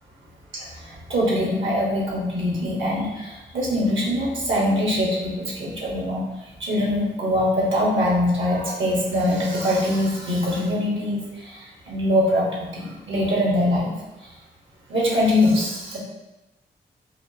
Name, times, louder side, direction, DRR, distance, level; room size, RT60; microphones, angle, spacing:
voice 1, 0.5-13.9 14.2-14.4 14.9-16.0, left 1 dB, 70° right, -4 dB, 1.4 m, -23 dB
4.9 x 2.5 x 2.8 m, 1.0 s
supercardioid pair, 45°, 20 cm